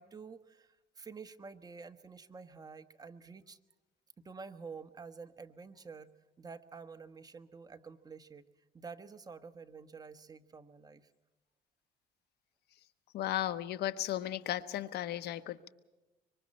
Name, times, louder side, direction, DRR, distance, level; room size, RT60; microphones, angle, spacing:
voice 1, 0.0-3.6 4.2-6.1 6.4-8.5 8.7-11.1, right 5 dB, 20° right, 8 dB, 1.3 m, -49 dB
voice 2, 13.1-15.7, left 13 dB, 75° left, 13 dB, 1.2 m, -35 dB
26.0 x 24.0 x 4.3 m, 1.1 s
cardioid pair, 110°, 17 cm